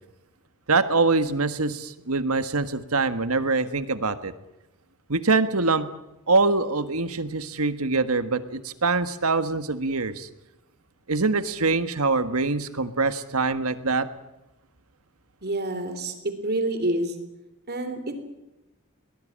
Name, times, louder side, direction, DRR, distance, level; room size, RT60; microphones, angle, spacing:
voice 1, 0.7-4.3 5.1-5.9 6.3-10.3 11.1-14.1, right 3 dB, 80° right, 11 dB, 1.6 m, -24 dB
voice 2, 15.4-16.1 16.4-17.1 17.7-18.2, right 1 dB, 50° right, 8 dB, 3.5 m, -27 dB
22.5 x 19.5 x 8.8 m, 0.96 s
head